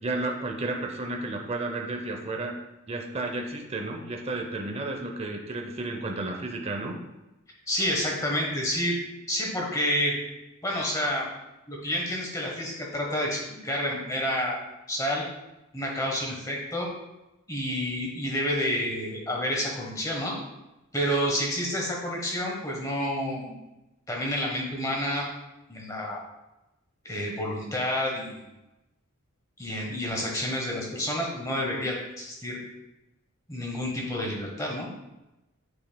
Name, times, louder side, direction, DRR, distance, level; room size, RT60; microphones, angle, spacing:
voice 1, 0.0-2.6 2.9-6.9, right 2 dB, 25° right, 2 dB, 0.6 m, -32 dB
voice 2, 7.7-9.0 9.3-10.1 10.6-11.3 11.7-14.6 14.9-15.2 15.7-16.9 17.5-20.3 20.9-23.5 24.1-25.3 25.7-26.2 27.0-28.4 29.6-32.6 33.5-34.9, equal, 15° left, -1 dB, 1.1 m, -29 dB
7.9 x 5.3 x 2.2 m, 0.97 s
head